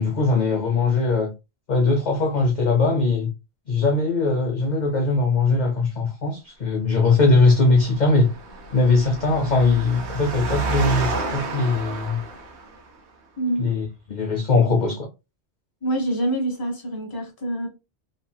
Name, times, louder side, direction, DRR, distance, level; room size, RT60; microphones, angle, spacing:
voice 1, 0.0-1.3 1.7-3.3 3.7-8.3 8.7-12.2 13.6-15.1, left 3 dB, 50° left, 0.6 m, -20 dB
Engine, 7.3-12.9, right 3 dB, 85° right, 1.0 m, -31 dB
voice 2, 13.4-13.7 15.8-17.7, right 1 dB, 20° left, 0.8 m, -26 dB
3.0 x 2.8 x 2.2 m
omnidirectional pair, 1.1 m